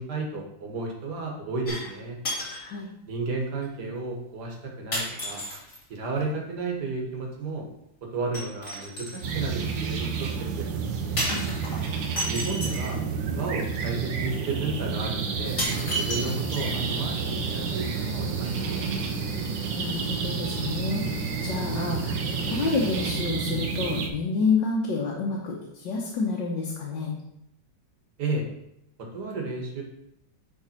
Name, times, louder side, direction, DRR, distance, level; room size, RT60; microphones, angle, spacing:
voice 1, 0.0-2.2 3.1-5.4 5.9-7.7 8.1-10.7 12.3-13.0 13.4-15.6 15.9-18.9 28.2-28.5 29.0-29.8, right 3 dB, 65° right, 0 dB, 1.9 m, -32 dB
sound 1, 1.7-2.0 2.2-2.7 3.6-3.7 4.9-5.8 8.3-9.2 11.2-12.9 14.1-14.2 14.7-14.8 15.6-16.8 17.2-17.3, equal, 40° left, 2.5 m, -32 dB
voice 2, 2.5-2.9 11.3-11.5 19.7-21.1 21.4-27.1, left 4 dB, 85° left, -3 dB, 1.7 m, -29 dB
sound 2, 9.2-24.1, right 5 dB, 80° right, 1.5 m, -30 dB
sound 3, 15.4-23.2, right 2 dB, 35° right, 0.8 m, -39 dB
10.0 x 3.6 x 4.3 m, 0.80 s
omnidirectional pair, 1.9 m